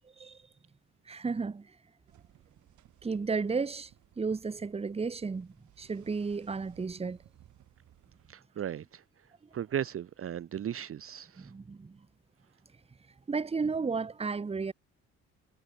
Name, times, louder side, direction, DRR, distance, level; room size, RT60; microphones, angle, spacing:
voice 1, 1.1-1.7 3.0-3.9 4.2-7.2 11.4-12.0 13.3-14.7, right 4 dB, 20° right, 0.9 m, -33 dB
sound 1, 2.1-8.3, right 12 dB, 75° right, 4.6 m, -61 dB
voice 2, 8.3-9.0 9.5-11.5, right 9 dB, 45° right, 0.8 m, -36 dB
cardioid pair, 90°, 30 cm